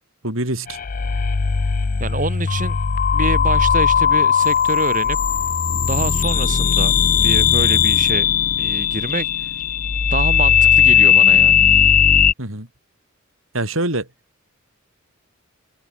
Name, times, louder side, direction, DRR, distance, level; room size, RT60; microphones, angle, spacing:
voice 1, 0.2-0.8 12.4-12.7 13.5-14.1, right 1 dB, 70° right, 6.8 m, -24 dB
sound 1, 0.7-12.3, left 8 dB, 40° left, 0.5 m, -17 dB
voice 2, 2.0-2.8 3.1-5.2 5.9-6.9 7.2-8.3 8.6-9.5 10.1-11.7, right 3 dB, 40° right, 6.4 m, -26 dB
head